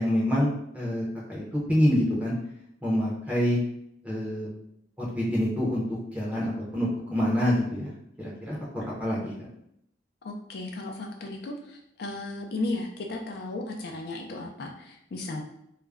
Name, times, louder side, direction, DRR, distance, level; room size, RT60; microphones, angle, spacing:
voice 1, 0.0-2.3 2.8-3.6 4.0-4.5 5.0-5.8 6.1-7.9 8.2-9.3, equal, 5° right, -5 dB, 0.6 m, -26 dB
voice 2, 10.2-15.4, left 2 dB, 55° left, 1 dB, 0.4 m, -35 dB
2.3 x 2.1 x 3.3 m, 0.74 s
head